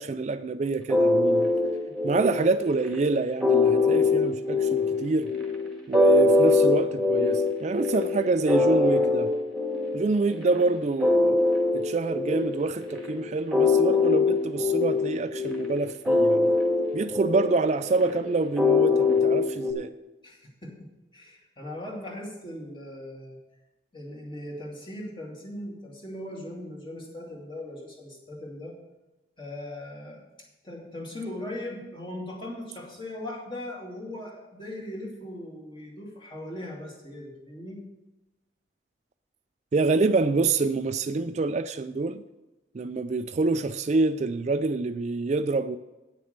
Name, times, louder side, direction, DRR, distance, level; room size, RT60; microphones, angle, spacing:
voice 1, 0.0-1.5 2.0-5.3 5.9-9.3 9.9-11.4 11.7-16.6 16.9-19.9 39.7-42.2 42.7-45.8, right 3 dB, 40° right, 0.4 m, -26 dB
sound 1, 0.9-19.7, left 3 dB, ahead, 1.7 m, -23 dB
voice 2, 20.2-23.4 23.9-28.8 29.4-30.2 30.6-37.8, left 1 dB, 30° left, 2.3 m, -39 dB
9.1 x 6.6 x 6.5 m
head